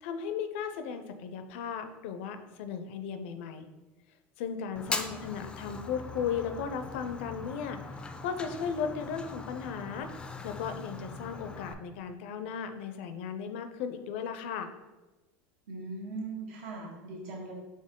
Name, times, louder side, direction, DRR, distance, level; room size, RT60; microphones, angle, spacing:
voice 1, 0.0-3.7 4.4-7.8 8.2-10.1 10.4-14.7, left 7 dB, 80° left, 8 dB, 0.5 m, -36 dB
Fire, 4.8-11.7, left 3 dB, 15° left, 0.3 m, -40 dB
voice 2, 15.7-17.5, right 3 dB, 80° right, -2 dB, 1.4 m, -39 dB
4.3 x 3.1 x 3.7 m, 1.1 s
supercardioid pair, 120°, 6 cm